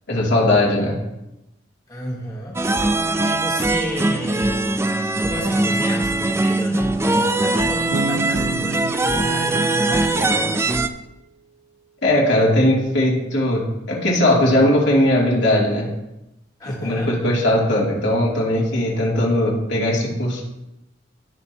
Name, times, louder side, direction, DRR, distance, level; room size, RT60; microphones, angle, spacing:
voice 1, 0.1-1.0 12.0-15.9 16.6-20.4, left 1 dB, 70° left, -4 dB, 2.7 m, -19 dB
voice 2, 1.9-4.6 5.2-10.2 16.6-17.1, left 1 dB, 20° left, -2 dB, 1.3 m, -32 dB
sound 1, 2.5-10.9, right 2 dB, 15° right, 0.4 m, -21 dB
Bass guitar, 7.9-10.9, right 3 dB, 75° right, 0.5 m, -32 dB
17.0 x 6.0 x 2.9 m, 0.91 s
head